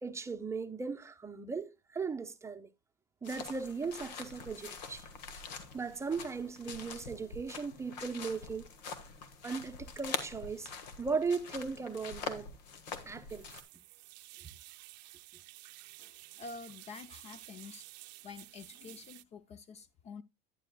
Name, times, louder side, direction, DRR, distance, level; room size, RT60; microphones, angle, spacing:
voice 1, 0.0-2.7 3.2-5.1 5.7-8.7 9.4-10.7 11.0-12.5 13.0-13.5, right 5 dB, 15° right, 0.7 m, -37 dB
sound 1, 3.2-13.6, left 5 dB, 90° left, 1.6 m, -44 dB
sound 2, 13.3-19.2, right 20 dB, 85° right, 0.5 m, -53 dB
voice 2, 16.0-17.9 18.2-20.2, left 4 dB, 30° left, 0.5 m, -48 dB
11.5 x 9.7 x 2.2 m
supercardioid pair, 130°, 21 cm